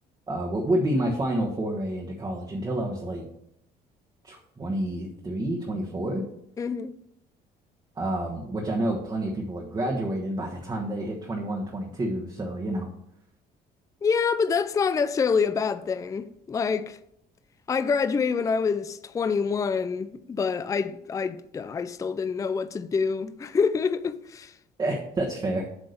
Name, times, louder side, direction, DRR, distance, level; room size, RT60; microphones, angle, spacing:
voice 1, 0.3-3.3 4.2-6.2 8.0-12.9 24.8-25.7, right 1 dB, 25° right, 1.3 m, -29 dB
voice 2, 6.6-6.9 14.0-17.0 17.7-24.5, left 5 dB, 20° left, 0.4 m, -26 dB
8.1 x 3.7 x 6.7 m
cardioid pair, 110°, 17 cm